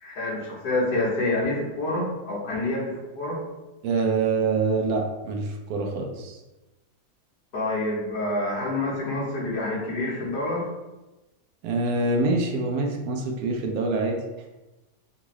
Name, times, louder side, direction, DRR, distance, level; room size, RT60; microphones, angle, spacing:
voice 1, 0.0-3.4 7.5-10.7, left 2 dB, 70° left, -6 dB, 1.5 m, -27 dB
voice 2, 3.8-6.4 11.6-14.2, right 3 dB, 70° right, 2 dB, 1.0 m, -25 dB
3.7 x 2.5 x 3.0 m, 1.0 s
omnidirectional pair, 1.8 m